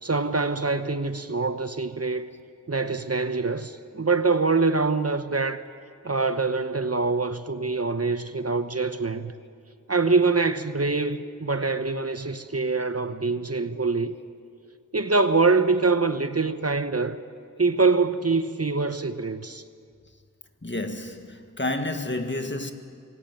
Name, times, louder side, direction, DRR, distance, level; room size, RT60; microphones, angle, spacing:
voice 1, 0.0-2.3 2.7-5.6 6.0-9.3 9.9-14.1 14.9-17.2 17.6-19.6, right 3 dB, 50° right, 0.9 m, -24 dB
voice 2, 20.6-22.7, left 2 dB, 35° left, 1.8 m, -31 dB
24.5 x 17.0 x 9.1 m
wide cardioid pair, 45°, 32 cm